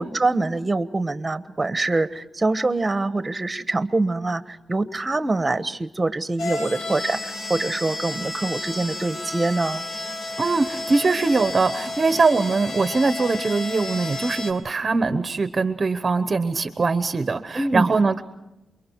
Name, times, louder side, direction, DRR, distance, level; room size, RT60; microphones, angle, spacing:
voice 1, 0.0-9.8 17.5-18.0, right 2 dB, 20° right, 11 dB, 1.3 m, -24 dB
sound 1, 6.4-14.5, left 2 dB, 75° left, 3.1 m, -31 dB
voice 2, 10.4-18.2, right 4 dB, 35° right, 10 dB, 1.0 m, -22 dB
29.0 x 23.0 x 4.7 m, 0.94 s
cardioid pair, 105°, 0 cm